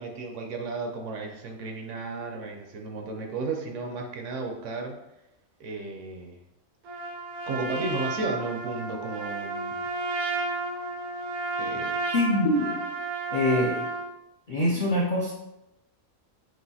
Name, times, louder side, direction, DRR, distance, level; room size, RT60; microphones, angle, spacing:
voice 1, 0.0-4.9 5.6-6.4 7.5-9.8 11.6-12.0, right 3 dB, 65° right, 2 dB, 0.9 m, -34 dB
Trumpet, 6.8-14.1, right 3 dB, 85° right, 1.3 m, -32 dB
voice 2, 12.1-12.8 13.3-13.9 14.5-15.3, left 1 dB, 60° left, -4 dB, 0.5 m, -24 dB
6.2 x 2.5 x 2.7 m, 0.87 s
omnidirectional pair, 1.5 m